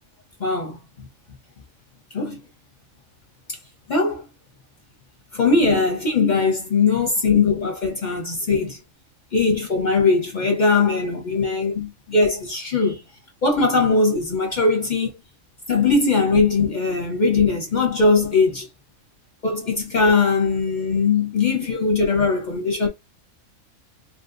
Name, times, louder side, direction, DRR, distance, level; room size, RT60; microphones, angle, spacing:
voice 1, 0.4-0.8 2.1-2.4 3.5-3.6 3.9-4.2 5.3-8.8 9.3-13.0 13.4-15.1 15.7-18.7 19.4-22.9, left 4 dB, 50° left, 0.6 m, -20 dB
3.0 x 2.6 x 2.4 m
omnidirectional pair, 1.4 m